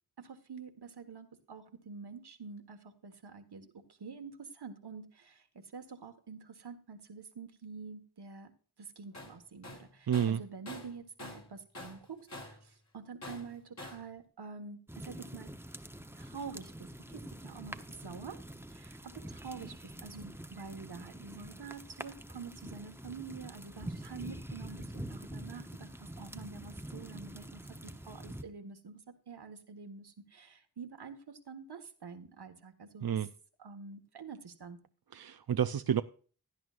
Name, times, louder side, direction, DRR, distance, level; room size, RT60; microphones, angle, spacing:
voice 1, 0.2-8.5 8.8-15.5 16.2-18.4 18.7-33.3 33.6-34.8, right 5 dB, 80° right, 1.6 m, -47 dB
Tools, 9.1-9.4 9.6-11.5 11.7-12.7 13.2-14.1, left 2 dB, 45° left, 3.3 m, -46 dB
voice 2, 10.1-10.4 33.0-33.3 35.1-36.0, right 9 dB, 65° right, 0.6 m, -30 dB
sound 1, 14.9-28.4, right 1 dB, 5° right, 0.9 m, -46 dB
17.0 x 10.5 x 2.5 m
wide cardioid pair, 65°, 39 cm